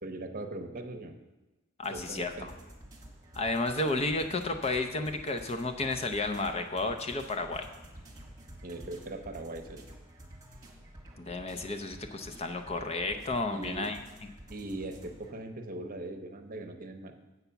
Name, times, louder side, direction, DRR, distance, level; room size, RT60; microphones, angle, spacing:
voice 1, 0.0-1.2 1.9-2.5 8.6-9.9 13.5-13.9 14.5-17.1, right 2 dB, 45° right, 5 dB, 0.8 m, -40 dB
voice 2, 1.8-2.5 3.3-7.7 11.2-14.0, left 2 dB, 30° left, 7 dB, 0.6 m, -32 dB
sound 1, 1.8-15.3, right 1 dB, 15° right, 1.4 m, -50 dB
8.1 x 5.7 x 7.0 m, 1.1 s
head